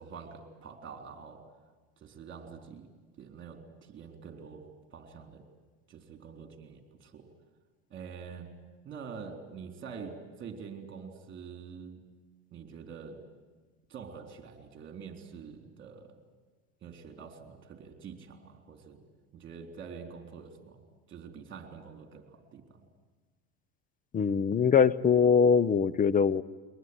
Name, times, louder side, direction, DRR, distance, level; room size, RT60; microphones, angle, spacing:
voice 1, 0.0-1.4 2.0-2.9 3.2-5.4 5.9-7.3 7.9-8.5 8.8-12.0 12.5-13.2 13.9-16.2 16.8-19.0 19.3-20.8 21.1-22.9, right 6 dB, 35° right, 5 dB, 3.9 m, -46 dB
voice 2, 24.1-26.4, left 6 dB, 25° left, 18 dB, 0.7 m, -23 dB
23.0 x 19.5 x 9.6 m, 1.3 s
supercardioid pair, 120°, 34 cm